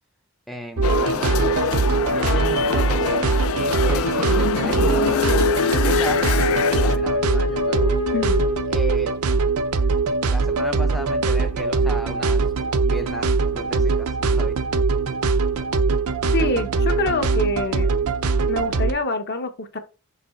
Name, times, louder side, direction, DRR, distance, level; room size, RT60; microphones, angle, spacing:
voice 1, 0.5-1.7 2.1-3.3 3.6-7.9 8.7-9.1 10.3-14.5, equal, ahead, 0.5 m, -35 dB
sound 1, 0.8-7.0, left 6 dB, 65° left, 0.5 m, -24 dB
sound 2, 0.8-18.9, right 4 dB, 70° right, 0.6 m, -22 dB
Wind instrument woodwind instrument, 4.7-9.0, left 8 dB, 85° left, 0.8 m, -27 dB
voice 2, 8.1-8.4 16.3-17.9 18.5-19.8, left 3 dB, 50° left, 1.0 m, -26 dB
6.7 x 3.2 x 4.4 m
head